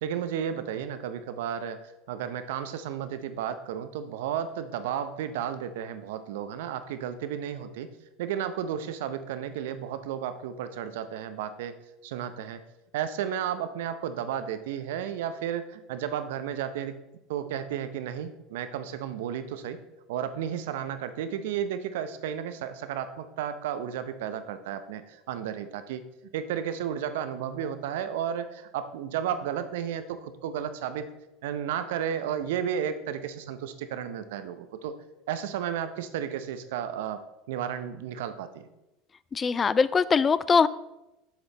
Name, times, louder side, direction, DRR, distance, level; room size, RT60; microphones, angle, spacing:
voice 1, 0.0-7.9 8.2-11.8 12.0-12.6 12.9-16.9 17.3-19.8 20.1-26.1 26.3-31.1 31.4-35.0 35.3-38.7, right 9 dB, 75° right, 11 dB, 0.7 m, -33 dB
voice 2, 39.3-40.7, left 5 dB, 30° left, 17 dB, 0.3 m, -22 dB
7.3 x 7.0 x 3.9 m, 0.94 s
hypercardioid pair, 80°, 0 cm